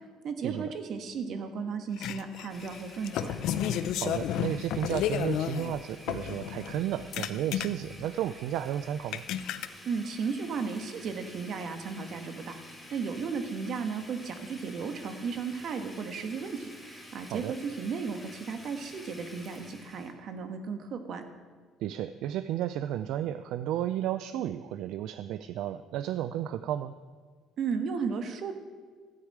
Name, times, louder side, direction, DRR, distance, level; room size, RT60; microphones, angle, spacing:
voice 1, 0.2-3.3 9.8-12.5 12.9-21.2 27.6-28.5, right 5 dB, 55° right, 6 dB, 1.3 m, -35 dB
sound 1, 2.0-5.8 6.1-8.0 8.6-8.7 9.1-9.7, left 10 dB, 70° left, 0.5 m, -32 dB
Domestic sounds home sounds, 2.5-20.1, left 1 dB, 5° left, 1.9 m, -49 dB
voice 2, 4.0-9.2 17.3-17.6 21.8-26.9, right 11 dB, 75° right, 12 dB, 0.4 m, -33 dB
13.0 x 4.9 x 8.5 m, 1.5 s
cardioid pair, 105°, 0 cm